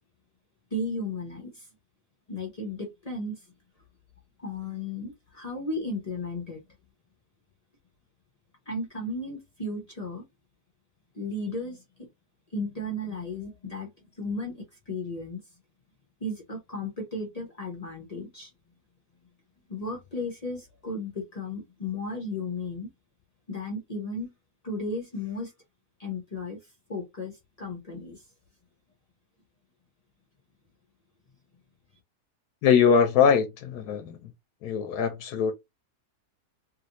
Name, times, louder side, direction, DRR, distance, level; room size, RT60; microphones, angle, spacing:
voice 1, 0.7-1.6 2.3-3.4 4.4-6.6 8.7-10.2 11.1-12.1 12.5-13.9 14.2-15.4 16.2-18.5 19.7-22.9 23.5-24.3 24.6-25.5 26.0-26.6 26.9-28.2, left 2 dB, 35° left, 0.7 m, -34 dB
voice 2, 32.6-34.2 34.6-35.5, left 7 dB, 85° left, 1.1 m, -22 dB
3.0 x 2.6 x 2.8 m
omnidirectional pair, 1.7 m